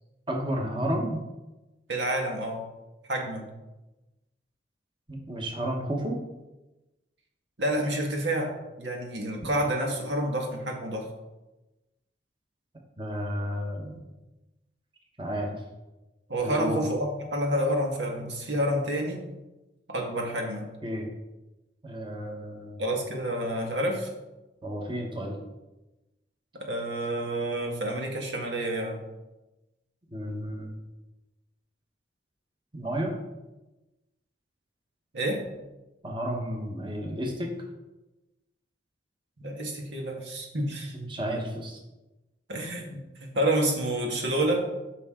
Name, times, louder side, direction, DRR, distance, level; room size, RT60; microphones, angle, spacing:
voice 1, 0.3-1.2 5.1-6.2 13.0-14.0 15.2-15.6 16.4-16.8 20.8-21.1 21.8-22.8 24.6-25.4 30.1-30.8 32.7-33.1 36.0-37.5 40.9-41.8, equal, 25° right, 1 dB, 1.3 m, -32 dB
voice 2, 1.9-2.7 3.1-3.5 7.6-11.1 16.3-19.2 19.9-20.7 22.8-24.1 26.5-29.0 35.1-35.4 39.4-41.0 42.5-44.7, right 1 dB, 85° right, 1 dB, 1.8 m, -29 dB
13.5 x 5.8 x 3.8 m, 1.0 s
head